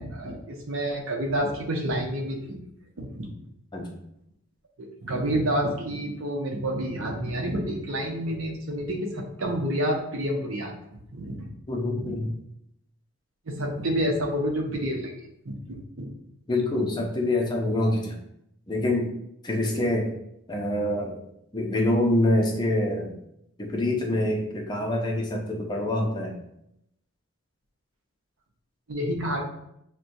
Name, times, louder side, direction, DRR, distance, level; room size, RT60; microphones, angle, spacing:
voice 1, 0.0-2.6 3.0-3.3 4.8-11.5 12.0-12.2 13.5-15.1 15.4-16.1 28.9-29.4, equal, 75° right, 2 dB, 0.7 m, -29 dB
voice 2, 11.7-12.4 16.5-18.2 18.7-19.2 19.4-20.1 20.5-21.2 21.5-23.2 23.6-26.4, left 1 dB, 20° left, 0 dB, 0.5 m, -25 dB
5.9 x 2.2 x 2.6 m, 0.79 s
head